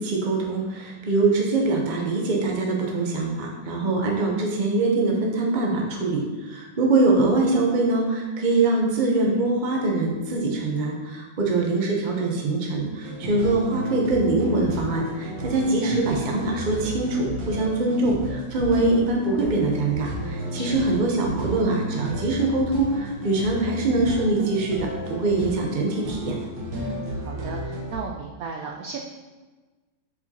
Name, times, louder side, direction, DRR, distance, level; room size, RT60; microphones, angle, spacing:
voice 1, 0.0-26.4, right 2 dB, 35° right, 0 dB, 0.8 m, -23 dB
Background Music, 13.0-28.0, equal, 90° right, 1.8 m, -33 dB
voice 2, 20.4-20.8 26.7-29.0, right 4 dB, 70° right, 1 dB, 0.9 m, -36 dB
6.9 x 4.7 x 2.9 m, 1.3 s
omnidirectional pair, 1.9 m